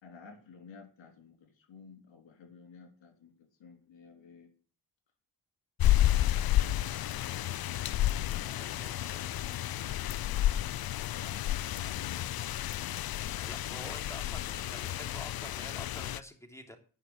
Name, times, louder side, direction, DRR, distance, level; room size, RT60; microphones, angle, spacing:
voice 1, 0.0-4.5 6.0-8.5 11.1-12.3, left 5 dB, 85° left, 3 dB, 3.5 m, -53 dB
sound 1, 5.8-16.2, left 13 dB, 55° left, 0.5 m, -31 dB
voice 2, 8.4-9.3 13.4-16.8, left 1 dB, 5° left, 4 dB, 3.1 m, -48 dB
10.0 x 6.2 x 7.9 m, 0.39 s
cardioid pair, 55°, 44 cm